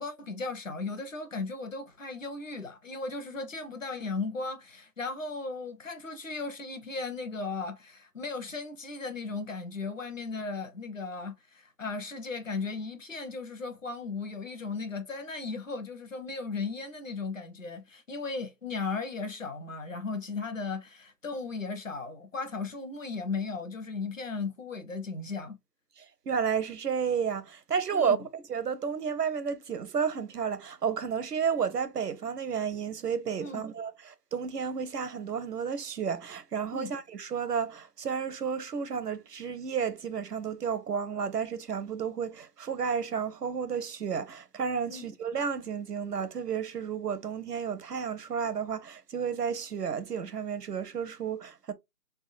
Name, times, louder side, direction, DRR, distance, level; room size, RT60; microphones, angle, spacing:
voice 1, 0.0-25.6 27.9-28.2 33.4-33.7 36.7-36.9 44.9-45.0, left 4 dB, 50° left, 1.0 m, -36 dB
voice 2, 26.0-28.2 28.5-51.7, right 6 dB, 70° right, 0.8 m, -32 dB
3.6 x 2.9 x 2.6 m
figure-of-eight pair, 175°, 49 cm